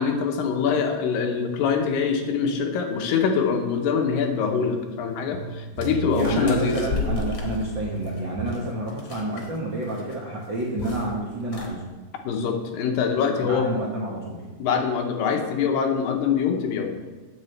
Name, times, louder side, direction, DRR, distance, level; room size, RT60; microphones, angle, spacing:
voice 1, 0.0-6.8 12.2-13.7 14.6-16.9, left 6 dB, 85° left, 3 dB, 2.6 m, -24 dB
sound 1, 5.0-5.1 5.3-8.6, right 8 dB, 85° right, 2.3 m, -35 dB
sound 2, 5.8-9.6 9.8-10.1 10.4-11.1 11.4-11.7, left 5 dB, 55° left, 1.6 m, -33 dB
voice 2, 6.1-11.8 13.4-14.4, right 1 dB, 70° right, -4 dB, 1.1 m, -29 dB
9.2 x 8.0 x 3.2 m, 1.3 s
omnidirectional pair, 4.1 m